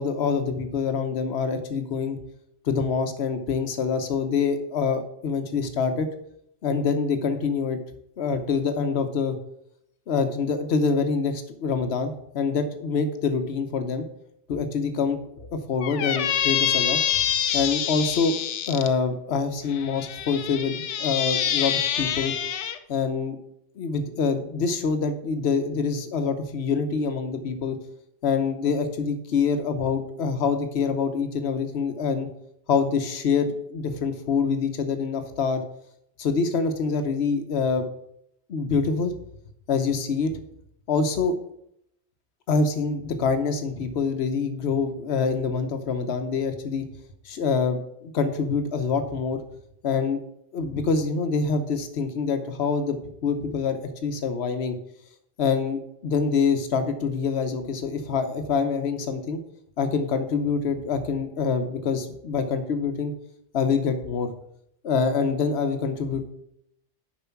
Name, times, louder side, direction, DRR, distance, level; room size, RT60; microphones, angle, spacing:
voice 1, 0.0-2.2 2.6-6.1 6.6-7.8 8.2-9.4 10.1-14.1 14.5-17.0 17.5-18.3 18.7-22.3 22.9-23.4 23.8-27.8 28.2-32.3 32.7-35.6 36.2-37.8 38.5-39.1 39.7-40.4 40.9-41.3 42.5-46.8 47.2-49.4 49.8-50.2 50.5-54.8 55.4-59.4 59.8-63.1 63.5-64.3 64.8-66.2, left 5 dB, 65° left, 8 dB, 1.1 m, -25 dB
Squeak, 15.8-18.9 19.7-22.8, left 10 dB, 85° left, 0.9 m, -26 dB
7.0 x 5.4 x 5.7 m, 0.75 s
omnidirectional pair, 1.2 m